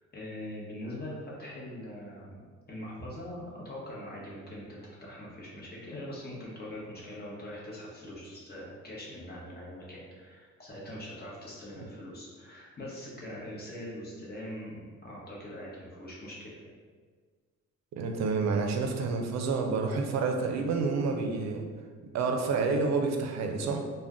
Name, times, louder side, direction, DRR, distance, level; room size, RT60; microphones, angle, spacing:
voice 1, 0.1-2.4 2.7-14.8 15.0-16.5, left 1 dB, 30° left, -5 dB, 0.9 m, -42 dB
voice 2, 18.0-21.6 22.1-23.8, right 4 dB, 65° right, 3 dB, 0.5 m, -29 dB
2.4 x 2.2 x 3.5 m, 1.5 s
cardioid pair, 90°, 30 cm